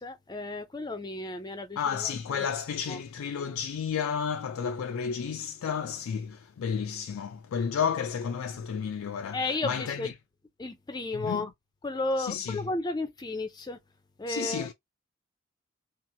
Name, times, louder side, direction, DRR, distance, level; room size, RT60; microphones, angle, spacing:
voice 1, 0.0-2.4 2.9-3.0 9.3-10.1 10.6-11.5 11.8-13.8 14.2-14.7, left 2 dB, 20° left, 0.4 m, -33 dB
voice 2, 1.8-10.1 11.1-11.5 12.2-12.6 14.3-14.7, left 7 dB, 80° left, 0.3 m, -32 dB
2.7 x 2.4 x 2.7 m
head